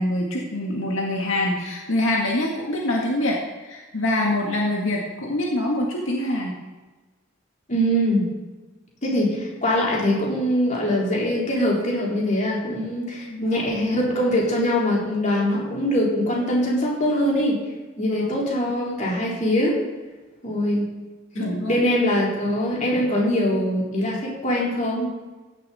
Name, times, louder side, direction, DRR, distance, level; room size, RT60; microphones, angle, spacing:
voice 1, 0.0-6.6 13.3-13.6 18.0-18.4 21.4-21.8, left 1 dB, 70° left, -2 dB, 2.0 m, -25 dB
voice 2, 7.7-8.3 9.0-17.6 18.0-19.8 20.4-20.9 21.3-25.1, equal, 35° left, -4 dB, 4.1 m, -23 dB
15.5 x 11.0 x 4.3 m, 1.2 s
head